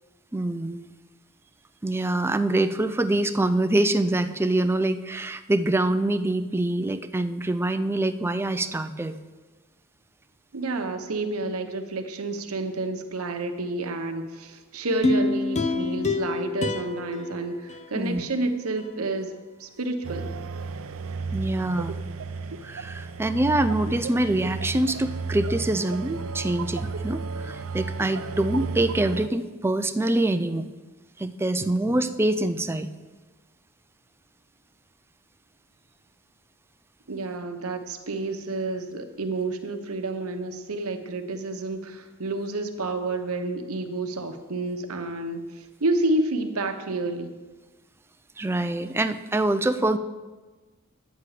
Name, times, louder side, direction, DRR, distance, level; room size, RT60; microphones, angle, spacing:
voice 1, 0.3-0.9 1.8-9.2 17.9-18.2 21.3-22.0 22.6-30.7 31.2-32.9 48.4-50.0, right 1 dB, 10° right, 9 dB, 0.4 m, -25 dB
voice 2, 10.5-19.3 19.6-20.3 37.1-47.4, right 2 dB, 85° right, 7 dB, 0.9 m, -29 dB
sound 1, 15.0-18.3 18.8-18.9, left 3 dB, 35° left, 0.6 m, -27 dB
sound 2, 20.0-29.3, right 4 dB, 70° right, 0.5 m, -33 dB
10.0 x 8.3 x 4.9 m, 1.3 s
head